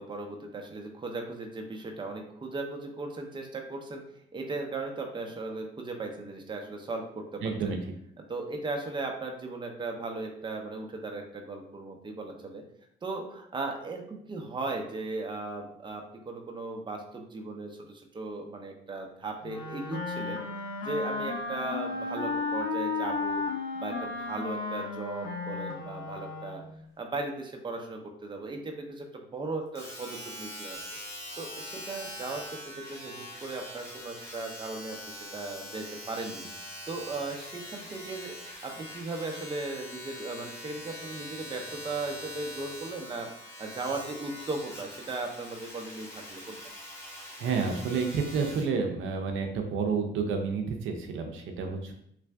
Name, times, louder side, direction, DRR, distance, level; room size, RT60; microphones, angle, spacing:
voice 1, 0.0-4.0 4.3-7.4 8.2-12.6 13.0-20.4 20.8-23.4 23.7-26.6 27.0-30.8 31.4-36.5 36.9-38.3 38.6-46.6, right 3 dB, 25° right, 2 dB, 0.6 m, -37 dB
voice 2, 7.4-7.8 47.4-51.9, right 5 dB, 75° right, 3 dB, 0.6 m, -30 dB
Wind instrument woodwind instrument, 19.4-26.8, left 3 dB, 85° left, 0.7 m, -34 dB
Domestic sounds home sounds, 29.7-48.7 49.4-49.5, left 1 dB, 15° left, 1.3 m, -43 dB
3.3 x 2.5 x 3.3 m, 0.71 s
cardioid pair, 90°, 20 cm